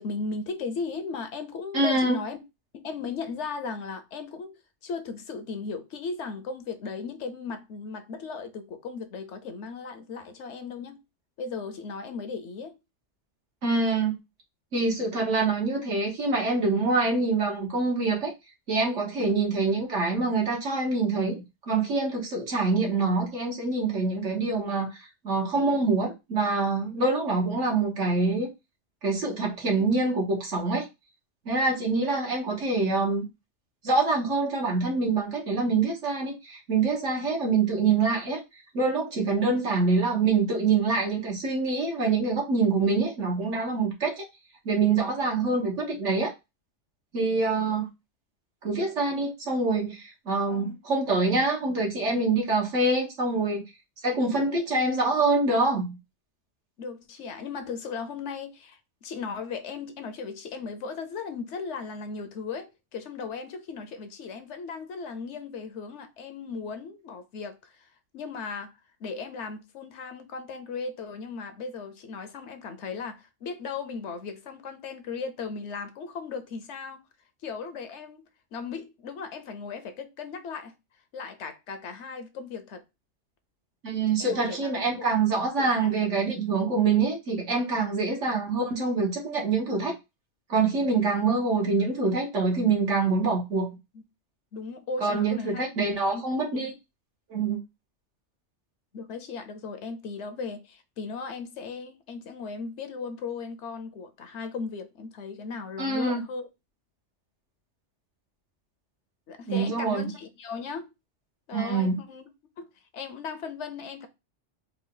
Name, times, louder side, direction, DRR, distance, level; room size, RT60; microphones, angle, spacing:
voice 1, 0.0-2.4 2.7-11.0 11.4-12.8 19.2-19.3 29.8-29.9 47.6-47.8 50.5-50.8 56.8-67.9 68.1-68.7 69.0-77.0 77.4-78.2 78.5-80.8 81.1-82.8 84.2-84.9 85.6-86.0 94.5-95.7 96.1-96.6 98.9-106.5 109.3-110.9 111.5-112.3 112.6-114.1, left 4 dB, 75° left, 1.0 m, -37 dB
voice 2, 1.7-2.2 13.6-14.2 14.7-18.3 18.7-28.5 29.0-30.9 31.5-33.3 33.8-38.4 38.7-44.2 44.7-46.3 47.1-47.9 48.6-53.6 54.0-55.9 83.8-90.0 90.5-93.7 95.0-96.7 97.3-97.6 105.8-106.2 109.5-110.1 111.5-112.0, right 3 dB, 80° right, 1.8 m, -25 dB
4.4 x 2.4 x 3.7 m
omnidirectional pair, 1.2 m